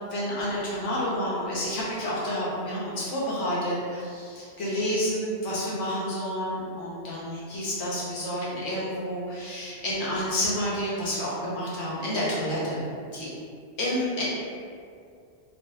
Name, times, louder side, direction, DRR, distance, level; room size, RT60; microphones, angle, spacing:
voice 1, 0.1-12.8 13.1-13.3 13.8-14.2, equal, 90° left, -7 dB, 1.2 m, -29 dB
3.3 x 2.5 x 2.6 m, 2.2 s
omnidirectional pair, 1.2 m